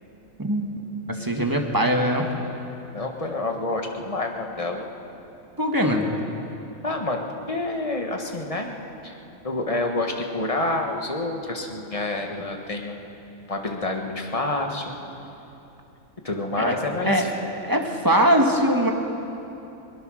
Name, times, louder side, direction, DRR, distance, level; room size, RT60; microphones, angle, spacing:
voice 1, 0.4-0.7 1.2-2.3 5.6-6.1 16.6-16.7 17.0-17.3 17.6-18.9, equal, 15° right, 2 dB, 1.6 m, -21 dB
voice 2, 2.9-4.9 6.8-8.7 9.0-9.2 9.4-13.1 13.5-14.9 16.2-17.3, left 2 dB, 25° left, 2 dB, 1.7 m, -28 dB
21.5 x 20.0 x 6.4 m, 2.9 s
omnidirectional pair, 1.4 m